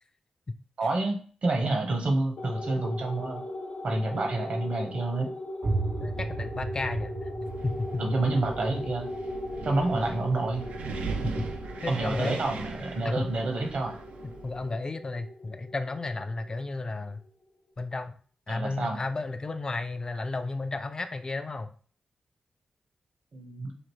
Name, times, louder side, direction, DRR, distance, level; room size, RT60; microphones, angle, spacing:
voice 1, 0.8-3.4 3.8-5.3 8.0-9.1 9.6-10.6 11.9-14.0 18.5-19.0 23.3-23.7, right 2 dB, 65° right, 2 dB, 1.2 m, -28 dB
sound 1, 2.4-17.1, left 1 dB, 80° left, 0.9 m, -39 dB
sound 2, 5.6-11.2, right 2 dB, 40° right, 0.5 m, -35 dB
voice 2, 6.0-7.1 7.6-8.0 11.0-11.5 11.8-12.4 13.0-13.3 14.2-17.2 17.8-18.2 18.5-21.7, left 3 dB, 30° left, 8 dB, 0.4 m, -33 dB
Wind, 7.4-14.7, right 5 dB, 90° right, 0.5 m, -39 dB
5.0 x 2.6 x 3.1 m, 0.42 s
cardioid pair, 85°, 2 cm